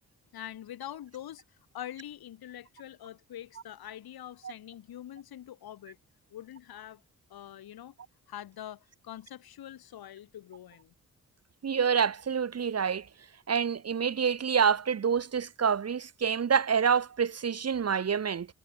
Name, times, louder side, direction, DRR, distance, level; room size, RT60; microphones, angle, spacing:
voice 1, 0.3-6.0 6.3-7.0 7.3-7.9 8.3-10.9, left 11 dB, 75° left, 4.4 m, -44 dB
voice 2, 11.6-13.1 13.5-18.5, right 7 dB, 40° right, 1.1 m, -27 dB
hypercardioid pair, 40°, 37 cm